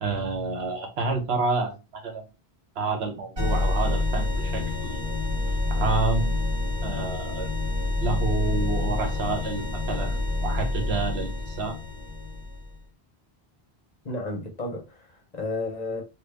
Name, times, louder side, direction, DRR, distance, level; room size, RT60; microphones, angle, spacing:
voice 1, 0.0-2.2 2.8-5.0 5.7-6.4 6.8-7.5 8.0-11.8, right 4 dB, 75° right, 1.1 m, -29 dB
sound 1, 3.4-12.8, left 2 dB, 55° right, 1.8 m, -27 dB
voice 2, 14.0-16.0, left 2 dB, 45° left, 0.8 m, -32 dB
3.1 x 2.3 x 3.3 m
omnidirectional pair, 1.1 m